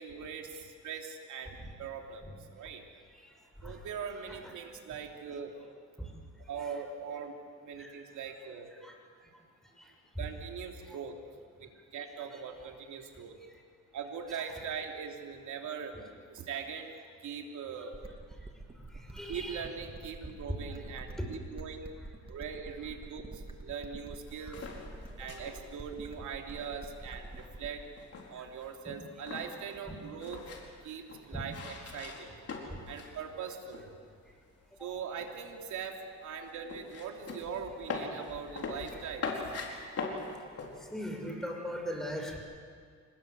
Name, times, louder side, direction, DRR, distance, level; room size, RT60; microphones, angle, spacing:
voice 1, 0.0-2.8 3.6-5.5 6.5-8.7 10.2-11.2 11.6-13.4 13.9-15.9 16.3-16.9 17.2-18.0 19.3-21.9 22.3-24.7 25.2-27.9 28.3-30.4 30.8-32.4 32.9-33.9 34.8-39.4, right 6 dB, 75° right, 2 dB, 3.2 m, -41 dB
sound 1, 17.9-27.9, right 2 dB, 20° right, 2.1 m, -47 dB
voice 2, 18.8-19.6 21.2-21.3 31.3-31.4 32.7-32.8 40.8-42.4, equal, ahead, 1 dB, 6.3 m, -39 dB
sound 2, 24.3-33.2 33.4-34.3 34.6-40.8, left 4 dB, 55° left, 4.6 m, -42 dB
26.0 x 20.5 x 8.1 m, 2.1 s
cardioid pair, 90°, 30 cm